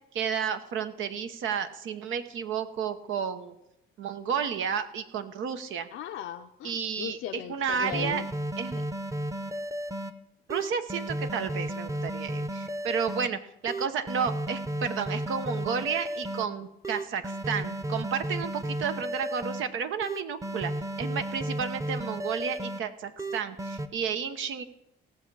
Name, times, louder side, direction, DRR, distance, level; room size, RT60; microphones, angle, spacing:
voice 1, 0.1-3.5 4.0-5.9 6.6-7.2 7.5-8.2 8.6-8.8 10.5-20.7 21.0-24.6, right 7 dB, 85° right, 9 dB, 1.0 m, -32 dB
voice 2, 5.9-8.3, left 11 dB, 80° left, 6 dB, 0.6 m, -38 dB
sound 1, 7.8-10.1 10.5-13.3 13.7-16.4 16.8-19.6 20.0-22.8 23.2-23.9, right 1 dB, 15° right, 0.8 m, -33 dB
17.0 x 7.1 x 4.8 m, 0.85 s
cardioid pair, 90°, 20 cm